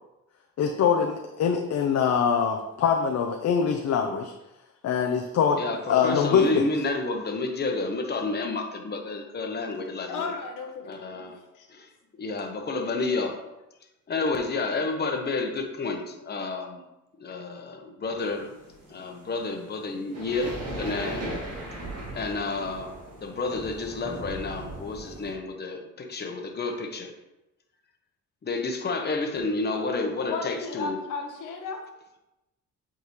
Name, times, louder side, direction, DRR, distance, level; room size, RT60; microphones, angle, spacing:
voice 1, 0.6-4.3 4.8-5.6 5.9-6.6, left 7 dB, 60° left, 2 dB, 0.7 m, -23 dB
voice 2, 5.6-10.2 10.9-11.4 11.7-11.9 12.2-13.4 14.1-16.8 17.2-18.5 18.9-21.3 22.1-22.9 23.2-27.1 28.4-31.0, left 3 dB, 35° left, 3 dB, 1.0 m, -30 dB
voice 3, 10.1-11.3 11.5-11.7 30.3-31.8, left 4 dB, 85° left, 2 dB, 1.1 m, -34 dB
sound 1, 18.2-25.3, right 1 dB, 55° right, 2.1 m, -38 dB
8.1 x 3.8 x 3.1 m, 0.96 s
cardioid pair, 90°, 30 cm